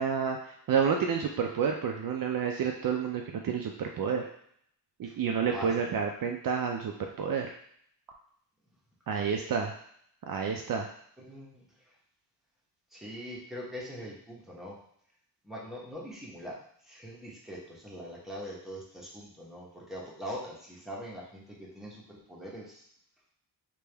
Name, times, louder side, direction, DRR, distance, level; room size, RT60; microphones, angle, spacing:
voice 1, 0.0-4.2 5.0-7.5 9.1-9.8 10.3-10.9, right 6 dB, 55° right, 2 dB, 0.5 m, -30 dB
voice 2, 5.5-6.0 11.2-11.6 12.9-14.8 15.4-16.6 16.8-22.8, equal, ahead, -5 dB, 1.0 m, -42 dB
3.4 x 2.9 x 3.3 m, 0.66 s
wide cardioid pair, 120°, 41 cm